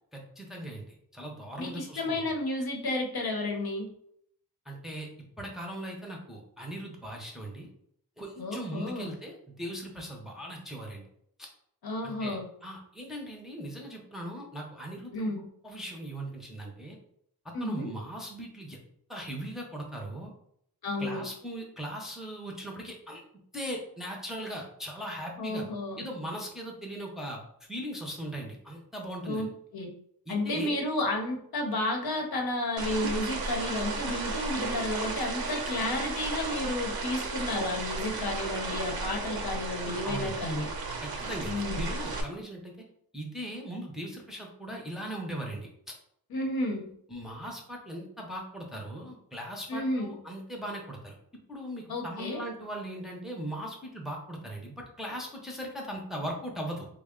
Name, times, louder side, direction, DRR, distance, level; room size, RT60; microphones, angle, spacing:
voice 1, 0.1-2.2 4.7-5.1 5.4-7.7 8.2-11.0 12.0-15.3 15.6-17.0 17.6-18.8 19.1-20.3 21.0-23.2 23.5-25.7 26.0-27.4 27.7-29.5 30.3-30.9 40.0-40.4 41.0-42.7 43.1-45.7 47.1-51.1 51.5-56.9, right 1 dB, ahead, 0 dB, 0.6 m, -39 dB
voice 2, 1.6-3.9 8.4-9.1 11.8-12.5 15.1-15.5 17.5-17.9 20.8-21.2 25.4-26.1 29.3-29.9 30.3-40.7 41.5-41.8 46.3-46.9 49.7-50.2 51.9-52.4, left 2 dB, 65° left, 2 dB, 0.7 m, -32 dB
sound 1, 32.8-42.2, right 3 dB, 65° right, 0.7 m, -34 dB
3.5 x 2.1 x 3.6 m, 0.69 s
wide cardioid pair, 130°, 39 cm